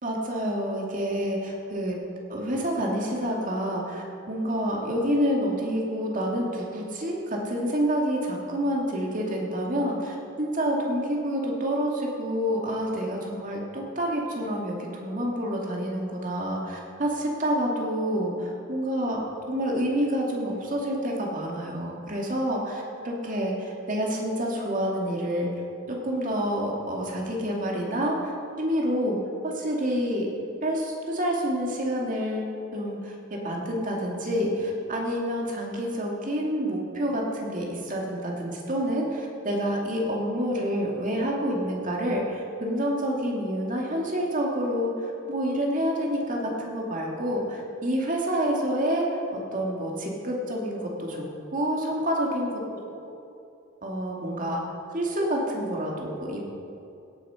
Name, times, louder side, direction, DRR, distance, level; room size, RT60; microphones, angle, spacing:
voice 1, 0.0-2.0 2.3-25.5 25.9-28.3 28.6-30.3 30.6-32.5 32.7-49.2 49.5-51.2 51.5-52.5 53.8-54.6 54.9-56.4, equal, 40° right, -1 dB, 2.4 m, -28 dB
17.0 x 8.7 x 5.8 m, 2.6 s
head